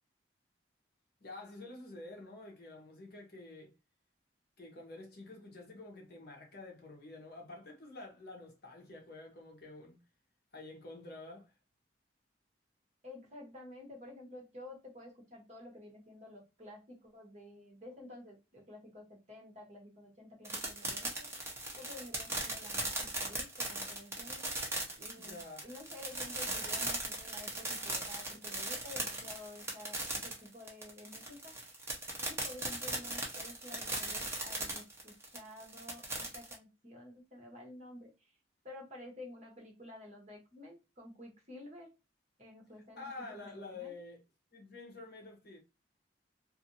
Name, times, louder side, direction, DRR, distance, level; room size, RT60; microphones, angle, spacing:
voice 1, 1.2-3.7 4.6-10.0 10.5-11.5 25.1-25.7 43.0-44.2 44.5-45.6, left 2 dB, 55° left, 0.9 m, -49 dB
voice 2, 13.0-21.3 21.7-24.4 25.0-31.5 32.2-38.3 38.6-41.9 42.4-43.9, left 1 dB, 35° right, 1.1 m, -51 dB
sound 1, 20.4-36.5, right 2 dB, 15° right, 0.7 m, -38 dB
2.6 x 2.6 x 2.7 m
head